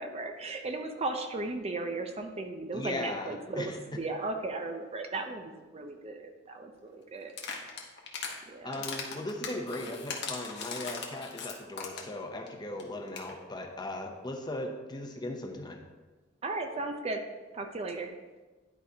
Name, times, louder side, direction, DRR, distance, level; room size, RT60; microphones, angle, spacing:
voice 1, 0.0-7.4 8.5-8.8 16.4-17.2 17.5-18.1, right 2 dB, 30° right, 5 dB, 0.5 m, -36 dB
voice 2, 2.7-3.8 8.6-15.8, left 1 dB, 20° left, 3 dB, 0.7 m, -38 dB
sound 1, 7.3-8.4 8.7-12.2 12.5-12.6 12.8-12.9 13.1-13.3, left 5 dB, 60° left, 1.1 m, -38 dB
10.5 x 4.9 x 2.8 m, 1.3 s
head